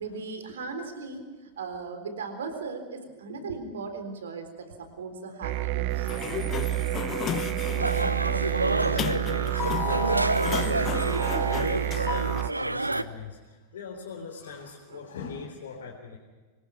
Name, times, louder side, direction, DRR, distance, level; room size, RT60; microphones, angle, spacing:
voice 1, 0.0-6.1 14.9-15.1, right 4 dB, 65° right, 7 dB, 3.9 m, -38 dB
sound 1, 5.4-12.5, right 17 dB, 45° right, 0.9 m, -29 dB
Sliding door, 5.9-12.4, left 10 dB, 30° left, 1.0 m, -34 dB
voice 2, 7.7-16.2, left 5 dB, 60° left, -2 dB, 3.8 m, -41 dB
sound 2, 7.8-13.0, right 2 dB, 85° right, 0.7 m, -28 dB
25.5 x 20.5 x 6.0 m, 1.3 s
figure-of-eight pair, 90°, 0 cm